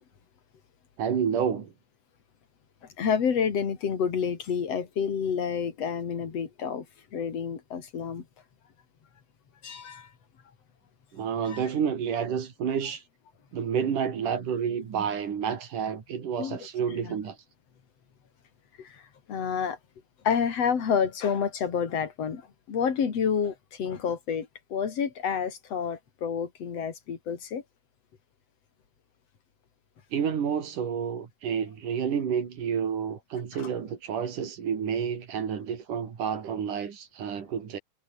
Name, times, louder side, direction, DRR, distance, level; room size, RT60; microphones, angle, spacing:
voice 1, 1.0-1.7 11.1-13.0 13.5-17.4 30.1-37.8, right 7 dB, 85° right, 4.5 m, -29 dB
voice 2, 3.0-6.9 7.1-8.2 9.6-10.1 11.5-11.6 16.4-16.6 16.9-17.1 18.8-18.9 19.3-19.8 20.2-22.4 22.7-27.6 33.5-33.7, left 7 dB, 55° left, 3.8 m, -29 dB
omnidirectional pair, 3.6 m